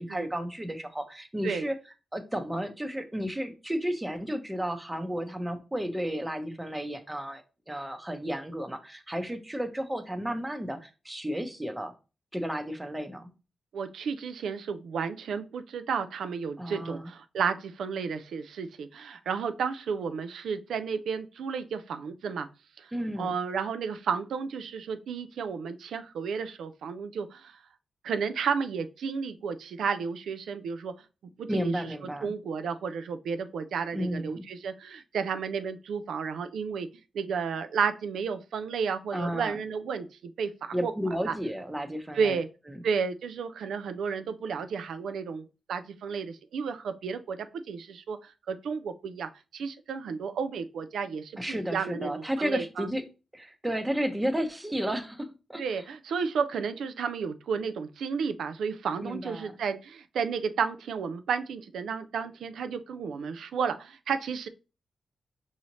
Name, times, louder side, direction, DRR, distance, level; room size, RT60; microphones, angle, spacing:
voice 1, 0.0-1.8 2.1-11.9 12.3-13.3 16.6-17.1 22.9-23.3 31.5-32.3 33.9-34.5 39.1-39.6 40.7-42.4 42.7-42.8 51.4-53.1 53.3-55.8 59.0-59.5, equal, 15° right, 7 dB, 0.7 m, -33 dB
voice 2, 13.7-22.5 22.8-22.9 23.2-27.5 28.0-30.9 31.4-31.7 32.2-36.9 37.1-40.5 40.8-40.9 41.3-41.4 42.1-42.5 42.8-47.4 47.7-52.9 55.6-64.5, right 6 dB, 90° right, 9 dB, 0.3 m, -32 dB
4.8 x 2.7 x 3.0 m, 0.31 s
cardioid pair, 80°, 0 cm